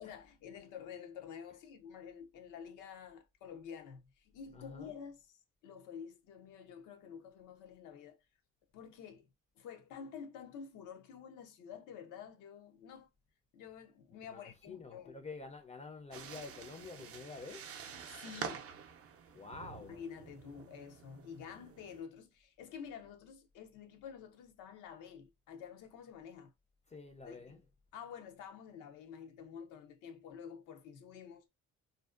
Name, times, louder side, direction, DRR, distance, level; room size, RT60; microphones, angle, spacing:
voice 1, 0.0-8.2 8.7-9.3 9.6-13.1 13.5-15.2 18.1-18.7 19.9-26.5 27.2-27.6 27.9-31.5, left 7 dB, 90° left, 0.6 m, -49 dB
voice 2, 4.5-4.9 14.3-17.8 19.3-20.0 26.9-27.6, left 4 dB, 25° left, 0.4 m, -48 dB
sound 1, 16.1-22.0, right 7 dB, 50° right, 0.5 m, -48 dB
2.6 x 2.1 x 2.3 m
cardioid pair, 90°, 30 cm